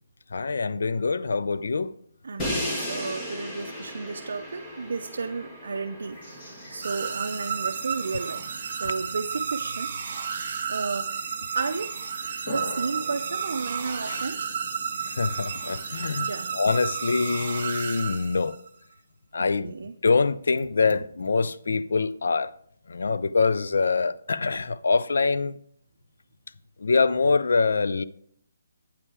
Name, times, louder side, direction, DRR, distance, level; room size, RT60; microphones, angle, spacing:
voice 1, 0.3-2.0 8.8-8.9 14.0-14.3 15.0-18.6 19.3-19.7 20.0-22.5 22.9-25.6 26.8-28.0, left 4 dB, 75° left, 0.4 m, -24 dB
voice 2, 2.2-9.9 10.7-11.1 11.5-11.9 12.5-14.4 16.2-16.5 19.6-19.9, right 4 dB, 70° right, 0.5 m, -33 dB
Crash cymbal, 2.4-8.4, left 1 dB, 15° left, 1.1 m, -36 dB
sound 1, 6.1-17.5, equal, 35° left, 3.1 m, -45 dB
sound 2, 6.8-18.7, right 7 dB, 40° right, 1.2 m, -32 dB
8.5 x 5.5 x 4.7 m
hypercardioid pair, 170°, 0 cm